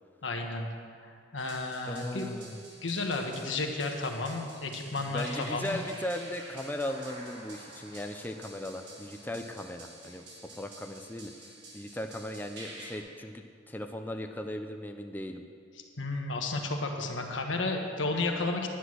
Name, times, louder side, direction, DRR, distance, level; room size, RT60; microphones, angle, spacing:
voice 1, 0.2-0.7 1.1-2.3 2.8-5.8 7.9-8.0 16.0-18.7, left 3 dB, 85° left, 2 dB, 1.3 m, -32 dB
sound 1, 1.4-13.0, right 1 dB, 65° right, 2.8 m, -49 dB
voice 2, 1.9-2.6 5.1-10.2 10.5-11.3 11.7-15.4, left 1 dB, 10° left, 5 dB, 0.5 m, -37 dB
10.0 x 9.7 x 6.3 m, 2.3 s
head